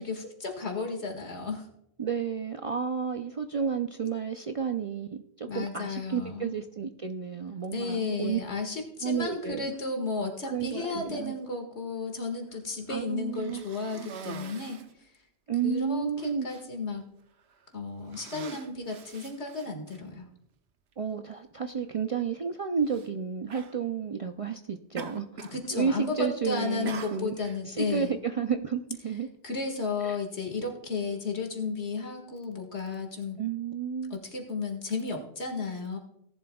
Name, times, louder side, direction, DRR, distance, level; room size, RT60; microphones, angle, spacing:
voice 1, 0.0-1.7 5.5-6.6 7.7-14.8 15.6-17.0 17.7-20.3 25.5-28.1 29.4-33.4 34.1-36.0, left 4 dB, 80° left, 3 dB, 2.1 m, -33 dB
voice 2, 2.0-8.4 9.0-9.7 10.5-11.4 12.9-13.6 15.5-16.5 21.0-25.3 25.7-27.3 27.7-29.3 30.0-30.2 33.4-34.2, right 6 dB, 50° right, 6 dB, 0.4 m, -31 dB
Cough, 13.3-15.0 15.7-15.8 16.2-16.6 17.4-17.6 18.0-20.0 20.9-21.0 22.8-23.1 23.5-23.8 25.0-25.6 25.9-26.3 26.9-27.6, right 6 dB, 75° right, 1.1 m, -43 dB
17.5 x 11.0 x 2.3 m, 0.78 s
omnidirectional pair, 1.1 m